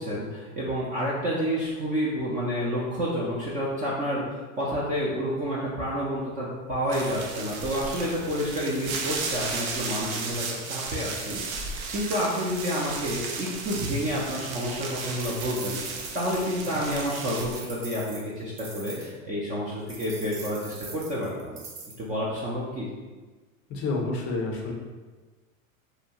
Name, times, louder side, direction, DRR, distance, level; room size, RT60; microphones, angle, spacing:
voice 1, 0.0-11.4 11.7-21.6 22.0-22.9, equal, 20° right, -6 dB, 0.3 m, -29 dB
sound 1, 6.7-8.1 9.0-9.9 10.5-10.6 11.0-12.0, equal, 65° right, 1.0 m, -42 dB
sound 2, 6.9-17.6, right 4 dB, 80° right, 0.6 m, -35 dB
sound 3, 15.0-19.1 19.9-22.0, right 4 dB, 40° right, 0.8 m, -42 dB
voice 2, 16.7-17.0 23.7-24.7, left 3 dB, 35° left, 1 dB, 0.5 m, -30 dB
2.6 x 2.2 x 2.8 m, 1.3 s
hypercardioid pair, 100°, 41 cm